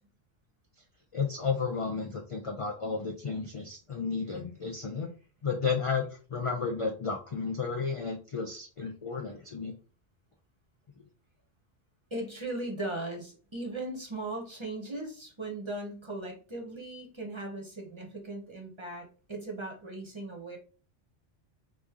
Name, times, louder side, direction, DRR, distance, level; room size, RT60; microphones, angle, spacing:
voice 1, 1.1-5.1 5.4-9.7, left 5 dB, 50° left, 2 dB, 0.4 m, -32 dB
voice 2, 12.1-20.6, right 2 dB, 30° right, 0 dB, 0.8 m, -38 dB
3.0 x 2.6 x 3.5 m, 0.36 s
omnidirectional pair, 1.2 m